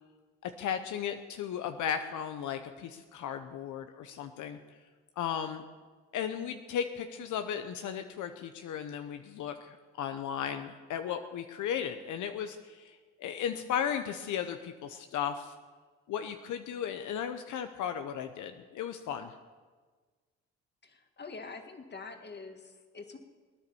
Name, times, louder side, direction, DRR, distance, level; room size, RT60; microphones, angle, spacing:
voice 1, 0.6-4.6 5.2-5.6 6.1-15.5 16.1-19.3, left 8 dB, 75° left, 7 dB, 0.8 m, -35 dB
voice 2, 20.8-23.2, left 4 dB, 35° left, 5 dB, 1.9 m, -45 dB
19.5 x 9.9 x 7.0 m, 1.4 s
cardioid pair, 90°, 30 cm